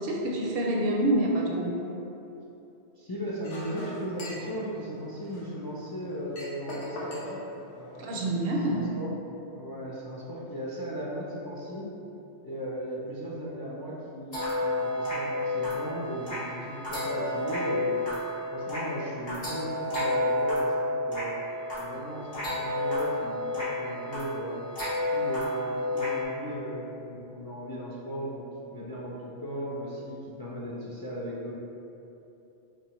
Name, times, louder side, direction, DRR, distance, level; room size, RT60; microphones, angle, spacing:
voice 1, 0.0-1.8 8.0-8.9, right 1 dB, 65° right, -1 dB, 0.7 m, -27 dB
voice 2, 3.0-7.4 7.7-8.3 8.7-9.1 9.5-11.9 12.4-17.9 18.5-21.4 21.8-24.6 25.1-28.4 28.7-31.5, equal, 40° left, -7 dB, 0.3 m, -37 dB
Chink clink, 3.4-8.4, left 1 dB, 85° left, 1.2 m, -43 dB
sound 1, 14.3-26.2, left 1 dB, 55° left, 1.6 m, -30 dB
4.5 x 3.6 x 2.9 m, 2.9 s
omnidirectional pair, 1.2 m